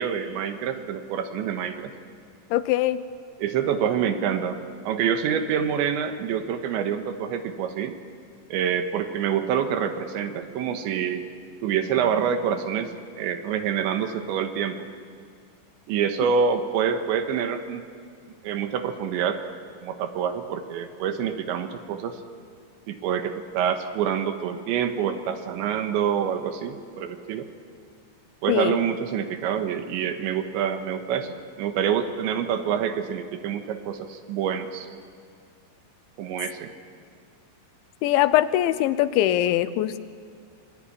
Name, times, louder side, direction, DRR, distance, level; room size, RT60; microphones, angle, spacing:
voice 1, 0.0-1.9 3.4-8.0 8.5-11.3 11.6-14.9 15.9-17.8 18.4-19.4 19.8-22.2 22.9-27.5 28.4-34.9 36.2-36.7, right 8 dB, 85° right, 7 dB, 3.7 m, -26 dB
voice 2, 2.5-3.0 28.5-28.8 38.0-40.0, left 13 dB, 85° left, 13 dB, 3.3 m, -22 dB
26.0 x 22.5 x 10.0 m, 2.2 s
omnidirectional pair, 5.2 m